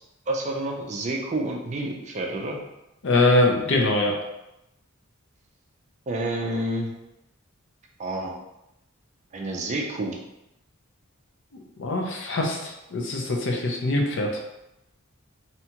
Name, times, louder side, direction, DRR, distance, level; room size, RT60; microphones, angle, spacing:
voice 1, 0.3-2.6 6.1-6.9 8.0-8.3 9.3-10.2, right 1 dB, 35° right, 0 dB, 0.4 m, -29 dB
voice 2, 3.0-4.1 11.8-14.3, left 2 dB, 55° left, 1 dB, 0.5 m, -23 dB
2.8 x 2.3 x 2.8 m, 0.87 s
head